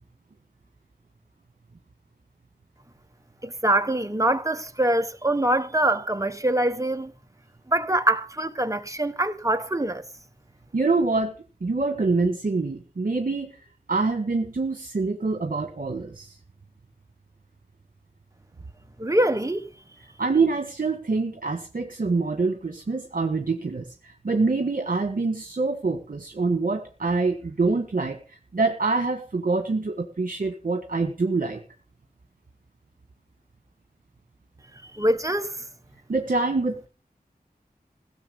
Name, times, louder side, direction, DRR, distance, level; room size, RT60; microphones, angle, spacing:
voice 1, 3.4-7.1 7.7-10.0 19.0-19.7 34.9-35.6, right 1 dB, 20° right, 1.1 m, -24 dB
voice 2, 10.7-11.3 11.6-13.5 13.9-16.3 20.2-31.6 36.1-36.9, right 3 dB, 60° right, 1.6 m, -25 dB
17.0 x 6.9 x 7.0 m
wide cardioid pair, 70°, 16 cm